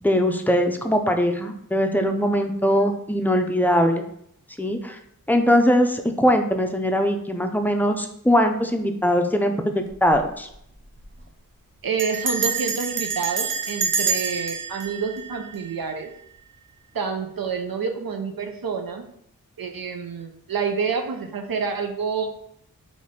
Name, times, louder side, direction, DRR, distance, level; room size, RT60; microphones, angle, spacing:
voice 1, 0.0-4.0 4.6-5.0 5.3-10.5, equal, 5° left, 4 dB, 0.5 m, -21 dB
Bell, 9.9-10.2 10.5-10.6 10.8-11.2 12.0-16.1, right 5 dB, 35° right, 0.7 m, -27 dB
voice 2, 11.8-16.1 16.9-19.0 19.6-22.3, right 5 dB, 80° right, 5 dB, 0.7 m, -28 dB
4.1 x 3.1 x 3.6 m, 0.72 s
wide cardioid pair, 85°, 35 cm